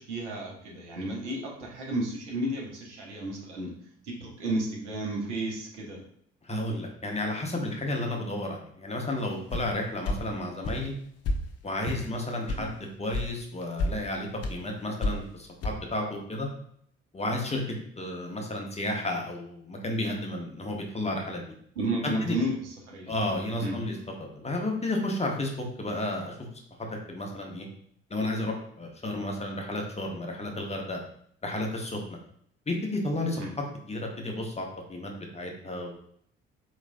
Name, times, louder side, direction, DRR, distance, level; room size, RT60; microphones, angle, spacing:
voice 1, 0.0-3.7 4.0-6.0 12.5-12.7 21.8-23.2 23.6-23.8 33.4-33.5, right 1 dB, 80° right, -2 dB, 1.0 m, -32 dB
voice 2, 6.5-10.9 11.6-12.7 13.0-16.5 17.1-17.6 18.0-21.4 22.0-22.4 23.1-26.4 26.8-27.7 28.1-31.0 31.4-32.2 32.7-33.4 33.9-36.0, left 1 dB, 20° left, 1 dB, 1.1 m, -32 dB
sound 1, 9.5-9.7 10.1-10.2 10.6-10.8 11.2-11.4 11.9-12.1 12.5-12.7 13.1-13.3 13.6-13.9 14.4-14.6 15.0-15.3 15.6-15.7, left 2 dB, 45° left, 0.7 m, -29 dB
4.5 x 3.1 x 2.6 m, 0.64 s
figure-of-eight pair, 50°, 34 cm